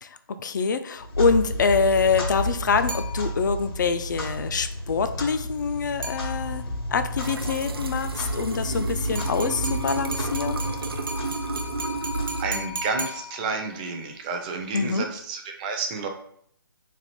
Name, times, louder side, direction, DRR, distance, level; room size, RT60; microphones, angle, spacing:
voice 1, 0.4-6.6 6.9-10.6 14.7-15.1, left 5 dB, 55° left, 10 dB, 0.4 m, -25 dB
Clock, 1.0-12.9, equal, 85° left, 1.6 m, -31 dB
sound 1, 2.9-3.7 6.0-6.8 9.2-13.8, equal, 65° right, 0.9 m, -36 dB
sound 2, 7.2-12.4, right 4 dB, 90° right, 0.4 m, -33 dB
voice 2, 12.4-16.1, right 4 dB, 20° right, 4 dB, 0.5 m, -30 dB
3.3 x 2.5 x 4.1 m, 0.65 s
figure-of-eight pair, 145°, 12 cm